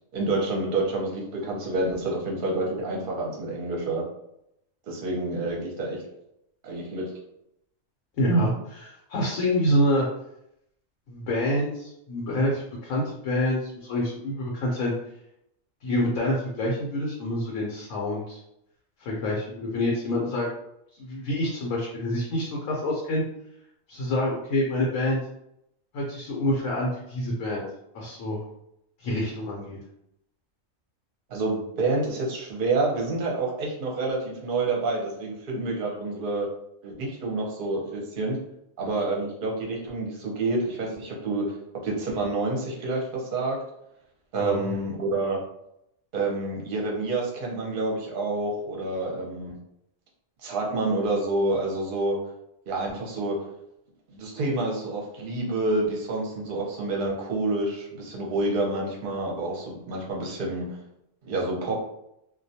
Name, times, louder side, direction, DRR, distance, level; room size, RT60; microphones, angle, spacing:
voice 1, 0.1-4.0 4.9-6.0 6.6-7.1 31.3-36.5 36.8-38.4 38.8-41.5 41.8-43.6 44.3-45.4 46.1-49.5 50.4-52.2 52.7-53.4 54.1-60.6 61.2-61.8, right 2 dB, 50° right, -1 dB, 0.7 m, -28 dB
voice 2, 8.2-10.1 11.1-14.9 15.8-18.4 19.0-20.5 21.0-23.2 23.9-25.2 25.9-27.6 27.9-28.4 29.0-29.8 44.3-44.6, left 1 dB, 90° left, -3 dB, 1.0 m, -27 dB
2.3 x 2.2 x 2.7 m, 0.79 s
omnidirectional pair, 1.4 m